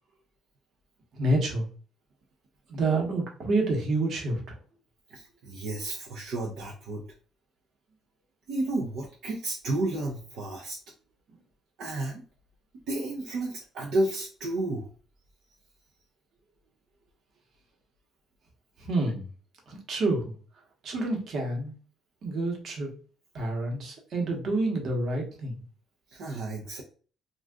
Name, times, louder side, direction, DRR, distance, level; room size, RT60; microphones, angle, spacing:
voice 1, 1.1-1.7 2.7-4.4 18.9-19.2 19.7-20.3 20.8-21.7 22.2-22.9 23.3-25.6, right 2 dB, 55° right, 1 dB, 1.0 m, -28 dB
voice 2, 5.1-7.1 8.5-10.8 11.8-12.2 12.9-14.9 26.1-26.8, right 2 dB, 75° right, -2 dB, 0.6 m, -32 dB
2.5 x 2.4 x 3.4 m, 0.39 s
cardioid pair, 115°, 0 cm